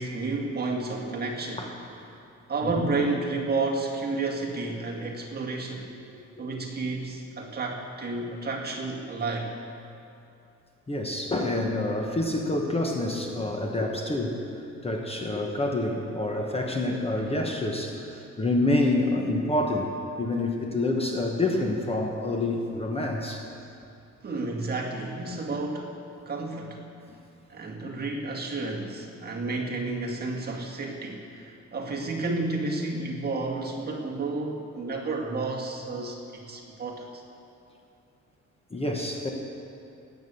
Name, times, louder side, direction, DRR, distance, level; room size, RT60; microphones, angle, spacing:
voice 1, 0.0-1.7 2.1-2.2 2.5-5.9 6.4-9.5 24.2-25.9 26.3-26.8 27.5-37.2, right 3 dB, 35° right, -1 dB, 1.8 m, -31 dB
voice 2, 10.9-14.5 14.8-19.9 20.2-23.4 38.7-39.3, left 2 dB, 20° left, 1 dB, 1.1 m, -27 dB
18.0 x 8.2 x 6.8 m, 2.6 s
wide cardioid pair, 155°, 30 cm